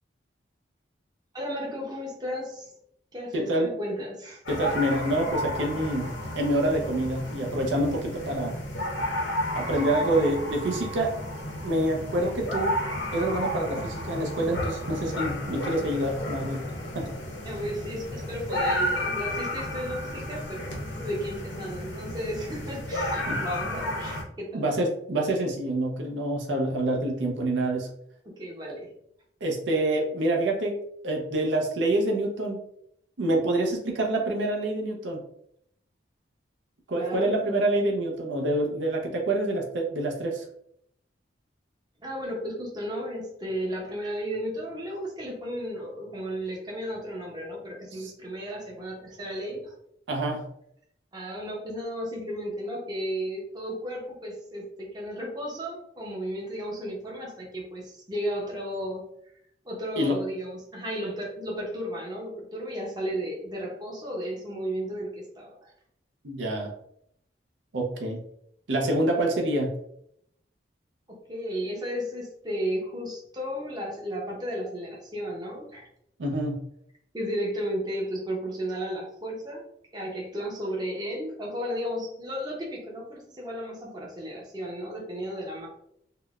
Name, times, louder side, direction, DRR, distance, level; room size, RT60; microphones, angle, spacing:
voice 1, 1.3-2.7 3.1-4.4 17.4-24.7 28.4-28.9 36.9-37.6 42.0-49.7 51.1-59.1 59.6-65.7 71.3-75.9 77.1-79.7 79.9-85.7, equal, 20° right, -3 dB, 0.6 m, -34 dB
voice 2, 3.3-3.7 4.5-8.6 9.5-11.2 11.6-12.8 13.1-16.6 16.9-17.1 23.3-23.4 24.5-27.9 28.7-28.8 29.4-30.8 31.0-32.6 33.2-35.2 36.9-40.4 48.0-48.1 50.1-50.5 60.0-60.2 66.2-66.7 67.7-68.2 68.7-69.7 76.2-76.6, right 1 dB, 75° right, 1 dB, 0.6 m, -27 dB
sound 1, 4.5-24.2, left 1 dB, 80° left, 0.7 m, -32 dB
3.7 x 2.1 x 2.3 m, 0.71 s
head